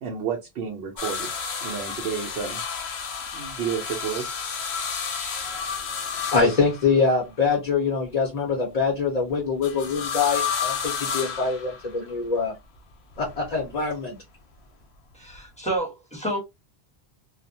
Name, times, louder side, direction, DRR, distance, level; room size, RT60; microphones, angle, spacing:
voice 1, 0.0-1.3 1.6-2.6 3.3-4.3, right 7 dB, 80° right, 0.9 m, -31 dB
sound 1, 1.0-7.2 9.6-12.1 13.2-13.9 15.4-15.5, left 6 dB, 90° left, 0.9 m, -31 dB
voice 2, 6.3-12.5 13.2-14.2, left 4 dB, 45° left, 0.7 m, -24 dB
voice 3, 15.1-16.4, right 1 dB, 5° left, 0.9 m, -29 dB
2.3 x 2.1 x 2.6 m
omnidirectional pair, 1.0 m